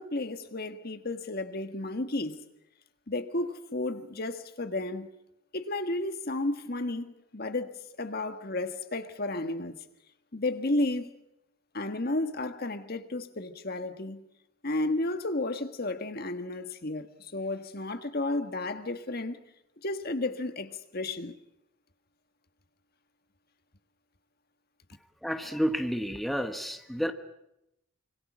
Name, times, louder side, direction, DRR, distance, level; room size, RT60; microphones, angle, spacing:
voice 1, 0.0-2.5 3.1-5.1 5.5-9.8 10.3-11.1 11.7-14.2 14.6-19.4 19.8-21.4, left 2 dB, 50° left, 1.6 m, -32 dB
voice 2, 25.2-27.1, equal, ahead, 1.2 m, -30 dB
26.0 x 25.0 x 6.2 m
head